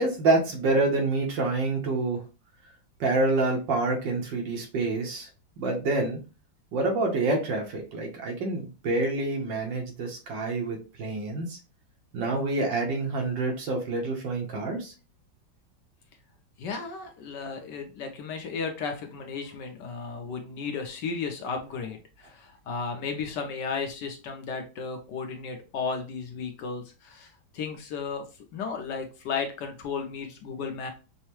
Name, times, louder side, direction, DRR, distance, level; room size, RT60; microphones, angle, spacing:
voice 1, 0.0-2.2 3.0-5.3 5.6-6.2 6.7-11.6 12.1-14.9, right 2 dB, 70° right, 2 dB, 1.6 m, -27 dB
voice 2, 16.6-28.3 28.5-30.9, left 5 dB, 70° left, 4 dB, 1.2 m, -34 dB
5.5 x 2.1 x 3.0 m, 0.31 s
omnidirectional pair, 2.1 m